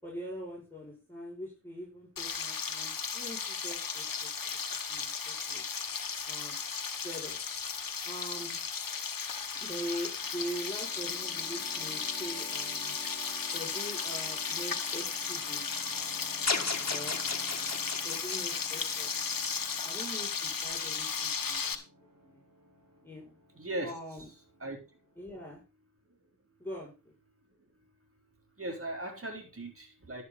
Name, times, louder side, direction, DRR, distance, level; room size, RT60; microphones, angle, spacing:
voice 1, 0.0-4.6 4.9-5.6 6.3-6.6 6.8-7.4 8.0-8.6 9.5-13.0 13.5-15.6 16.9-17.2 18.0-19.1 19.8-21.8 22.2-22.4 23.0-23.4 23.8-24.3 25.2-25.6 26.6-27.2, equal, 5° left, -5 dB, 6.5 m, -42 dB
Frying (food), 2.2-21.7, left 6 dB, 85° left, 1.4 m, -35 dB
sound 1, 10.1-25.5, equal, 75° right, 5.2 m, -53 dB
sound 2, 16.5-19.8, left 4 dB, 50° left, 1.9 m, -35 dB
voice 2, 23.6-23.9 24.6-24.8 28.6-30.2, right 1 dB, 40° right, 2 dB, 3.9 m, -38 dB
11.5 x 9.5 x 4.1 m, 0.31 s
cardioid pair, 40°, 33 cm